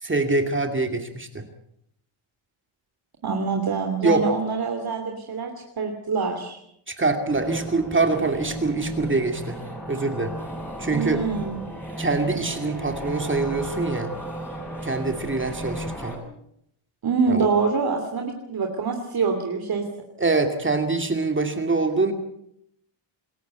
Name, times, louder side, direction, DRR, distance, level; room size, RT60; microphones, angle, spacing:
voice 1, 0.0-1.4 4.0-4.3 6.9-9.6 9.9-10.4 10.8-11.2 12.0-14.1 14.8-16.1 17.3-17.5 20.2-22.1, right 3 dB, 25° right, 6 dB, 2.4 m, -24 dB
voice 2, 3.2-5.5 5.8-6.6 10.9-11.6 17.0-19.8, right 5 dB, 45° right, 3 dB, 3.1 m, -25 dB
sound 1, 7.3-16.2, right 1 dB, 5° left, 7.7 m, -34 dB
27.0 x 14.0 x 8.1 m, 0.74 s
cardioid pair, 105°, 49 cm